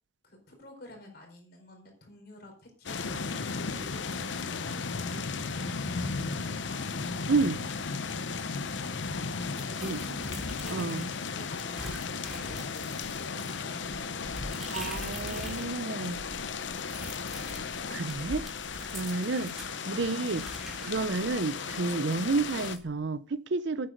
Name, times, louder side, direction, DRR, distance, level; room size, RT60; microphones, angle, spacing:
voice 1, 0.2-6.9 9.0-9.2 9.5-10.9 11.3-14.8, left 1 dB, 55° left, 4.5 m, -51 dB
sound 1, 2.9-22.8, left 5 dB, 75° left, 0.8 m, -35 dB
voice 2, 7.3-7.7 9.8-10.2 10.7-11.1 14.7-16.2 17.9-18.5 18.7-20.5 20.8-23.9, right 3 dB, 70° right, 0.6 m, -31 dB
sound 2, 9.6-11.2 11.6-15.7 16.0-19.7 20.2-22.8, equal, ahead, 3.4 m, -44 dB
9.4 x 7.9 x 7.8 m
head